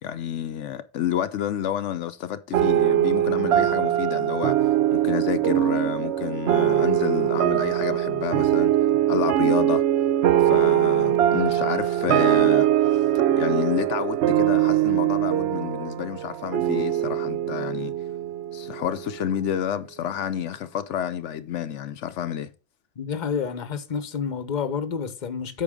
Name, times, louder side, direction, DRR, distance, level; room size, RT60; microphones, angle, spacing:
voice 1, 0.0-4.6 4.9-8.7 9.1-9.8 10.4-12.7 13.4-17.9 18.5-22.5, left 10 dB, 80° left, 0.9 m, -29 dB
sound 1, 2.5-19.3, right 12 dB, 65° right, 0.8 m, -22 dB
voice 2, 23.0-25.6, left 6 dB, 40° left, 0.9 m, -29 dB
8.6 x 5.6 x 3.6 m
omnidirectional pair, 1.2 m